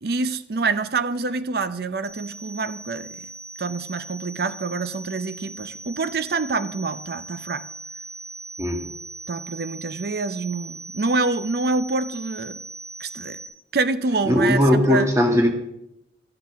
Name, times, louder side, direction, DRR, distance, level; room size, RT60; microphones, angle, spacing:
voice 1, 0.0-3.3 3.6-7.6 9.3-12.6 13.0-13.4 13.7-15.1, right 3 dB, 55° right, 0.5 m, -26 dB
sound 1, 2.0-13.5, right 2 dB, 35° right, 3.9 m, -39 dB
voice 2, 14.3-15.5, left 1 dB, 15° right, 1.7 m, -18 dB
13.5 x 8.0 x 6.2 m
head